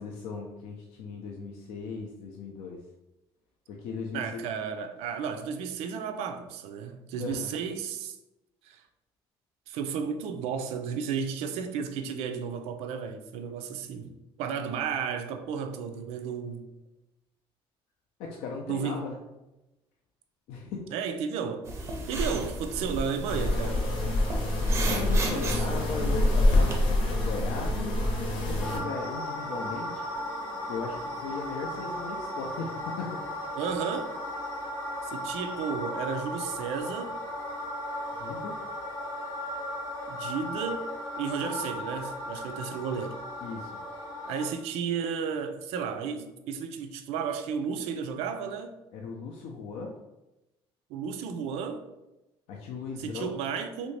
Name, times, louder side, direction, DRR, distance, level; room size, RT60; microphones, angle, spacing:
voice 1, 0.0-2.8 3.7-4.4 7.2-7.5 18.2-19.2 20.5-20.9 24.9-30.1 30.7-33.2 38.2-38.6 43.4-43.7 48.9-49.9 52.5-53.3, left 4 dB, 85° left, 0.5 m, -37 dB
voice 2, 4.1-8.2 8.6-8.8 9.7-14.1 14.4-16.7 18.7-19.0 20.9-21.6 22.1-23.9 25.3-25.9 33.5-34.1 35.0-37.2 40.1-40.9 41.2-43.2 44.3-48.8 50.9-51.8 53.0-54.0, right 6 dB, 90° right, 0.4 m, -33 dB
sound 1, 21.7-26.7, right 2 dB, 25° right, 0.4 m, -35 dB
sound 2, 23.3-28.8, left 1 dB, 55° left, 0.8 m, -26 dB
sound 3, 28.6-44.5, left 1 dB, 25° left, 0.8 m, -36 dB
3.1 x 2.6 x 3.2 m
cardioid pair, 180°, 10 cm